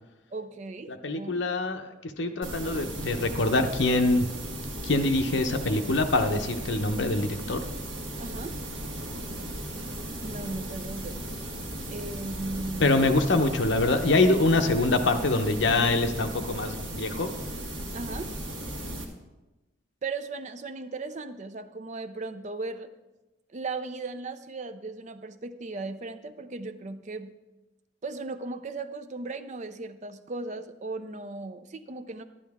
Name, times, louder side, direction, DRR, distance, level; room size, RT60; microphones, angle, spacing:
voice 1, 0.3-1.4 8.2-8.6 10.2-11.3 11.9-13.2 17.9-18.4 20.0-22.9 23.5-27.3 28.0-32.2, right 3 dB, 35° right, 11 dB, 0.4 m, -37 dB
voice 2, 0.9-4.3 4.8-7.6 12.8-17.3, left 2 dB, 65° left, 6 dB, 0.8 m, -24 dB
sound 1, 2.4-19.0, right 1 dB, 75° right, 1.6 m, -36 dB
11.5 x 10.0 x 3.6 m, 1.1 s
head